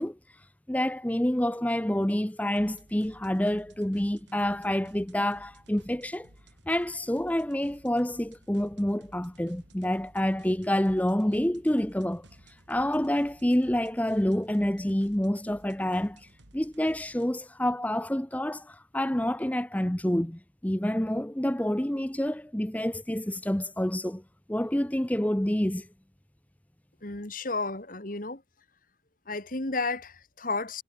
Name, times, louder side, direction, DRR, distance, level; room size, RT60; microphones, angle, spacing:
voice 1, 0.0-6.3 6.7-24.2 24.5-25.9, left 1 dB, 10° left, 0.7 m, -28 dB
sound 1, 2.5-17.3, right 1 dB, 70° right, 3.1 m, -57 dB
voice 2, 27.0-28.4 29.3-30.8, left 3 dB, 45° left, 2.0 m, -32 dB
head